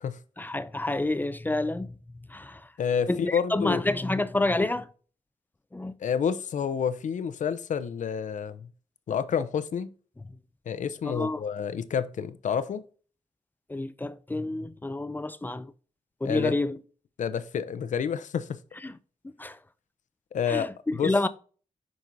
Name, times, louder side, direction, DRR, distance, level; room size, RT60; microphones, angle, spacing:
voice 1, 0.4-1.9 2.3-2.6 3.1-4.9 5.7-5.9 11.0-11.4 13.7-15.7 16.2-16.8 18.8-18.9 19.4-19.6 20.5-21.3, left 2 dB, 15° left, 0.4 m, -28 dB
voice 2, 2.8-3.8 6.0-8.7 9.1-9.9 10.7-12.8 16.2-16.6 17.2-18.6 20.3-21.1, left 7 dB, 70° left, 0.6 m, -29 dB
7.7 x 5.3 x 2.6 m
wide cardioid pair, 115°, 13 cm